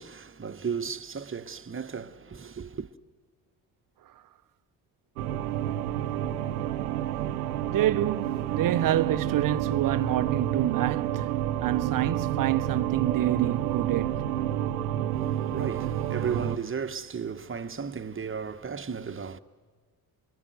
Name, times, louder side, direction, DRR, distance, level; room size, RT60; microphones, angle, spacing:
voice 1, 0.0-2.9 15.1-19.4, right 6 dB, 30° right, 1.2 m, -35 dB
sound 1, 5.2-16.6, right 11 dB, 80° right, 0.9 m, -29 dB
voice 2, 7.7-11.3 11.6-14.2, right 12 dB, 50° right, 0.8 m, -27 dB
26.0 x 24.5 x 8.0 m
hypercardioid pair, 45°, 44 cm